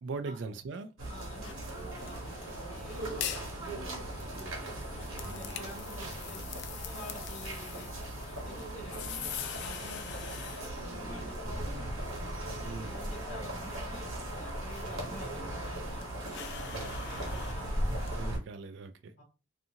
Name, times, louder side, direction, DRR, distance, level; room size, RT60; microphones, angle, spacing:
voice 1, 0.0-0.9 12.6-13.0 14.8-15.0 16.7-17.0 18.2-19.2, right 4 dB, 60° right, 0.3 m, -40 dB
sound 1, 1.0-18.4, right 1 dB, 80° right, 1.0 m, -38 dB
voice 2, 1.1-6.5 6.8-12.1 12.6-18.4 19.2-19.3, left 1 dB, 35° left, 0.9 m, -51 dB
sound 2, 1.4-18.1, left 9 dB, 55° left, 0.3 m, -46 dB
2.6 x 2.5 x 2.7 m
head